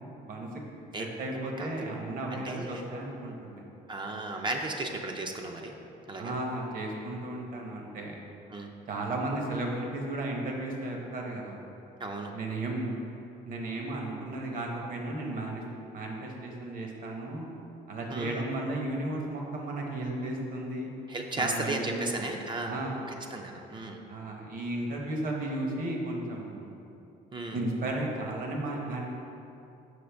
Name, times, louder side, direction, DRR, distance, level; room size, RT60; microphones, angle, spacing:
voice 1, 1.0-3.6 6.2-8.2 8.9-11.6 12.3-13.0 13.4-15.6 15.9-17.5 17.9-20.9 21.4-22.2 22.7-23.0 24.1-26.8 27.5-29.1, right 2 dB, 55° right, 0 dB, 1.0 m, -34 dB
voice 2, 1.6-2.0 2.3-2.8 3.9-5.8 6.1-6.3 8.5-8.7 12.0-12.3 18.1-18.5 21.1-22.8 23.3-24.0 27.3-27.6, right 2 dB, 30° right, 2 dB, 0.5 m, -35 dB
6.4 x 4.8 x 3.4 m, 2.8 s
cardioid pair, 110°, 17 cm